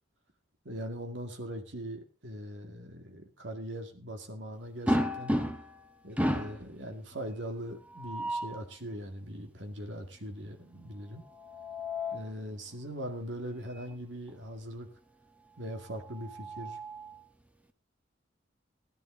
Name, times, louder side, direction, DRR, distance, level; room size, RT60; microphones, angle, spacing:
voice 1, 0.6-5.3 6.0-11.2 12.1-14.9 15.6-16.8, equal, 80° right, 5 dB, 2.2 m, -41 dB
sound 1, 4.9-5.8 6.2-6.7 7.9-8.6 11.3-12.3 13.7-13.9 14.3-14.4 15.9-17.2, equal, 10° right, 1.0 m, -32 dB
16.5 x 11.0 x 3.8 m, 0.32 s
head